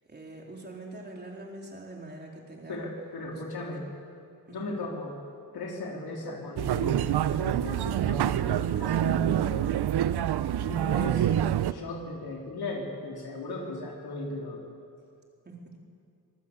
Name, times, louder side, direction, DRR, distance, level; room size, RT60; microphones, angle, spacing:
voice 1, 0.1-2.8 3.3-3.4 3.7-3.8 4.5-4.7 15.4-15.8, right 2 dB, 25° right, -1 dB, 4.1 m, -44 dB
voice 2, 2.7-3.9 4.5-5.2 5.5-9.7 10.6-11.3 11.7-14.6, left 2 dB, 75° left, 0 dB, 3.7 m, -37 dB
sound 1, 6.6-11.7, right 11 dB, 80° right, 0.7 m, -26 dB
24.5 x 19.5 x 8.2 m, 2.4 s
wide cardioid pair, 145°, 38 cm